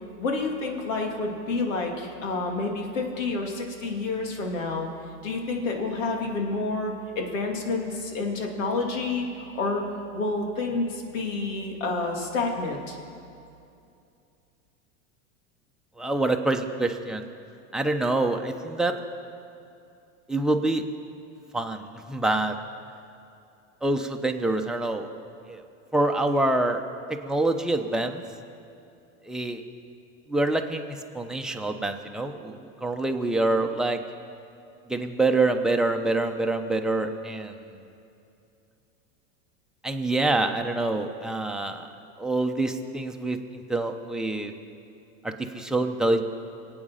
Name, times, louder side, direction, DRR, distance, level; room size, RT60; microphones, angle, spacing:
voice 1, 0.2-4.9 5.2-9.8 10.1-13.0, left 3 dB, 85° left, 1 dB, 2.8 m, -29 dB
voice 2, 16.0-17.3 17.7-18.9 20.3-20.8 21.5-22.6 23.8-25.1 25.5-25.6 25.9-26.8 27.1-28.2 29.3-29.6 30.3-34.0 34.9-37.7 39.8-41.9 42.2-44.5 45.2-46.2, right 2 dB, ahead, 3 dB, 0.9 m, -26 dB
24.5 x 8.9 x 5.7 m, 2.6 s
supercardioid pair, 120°, 38 cm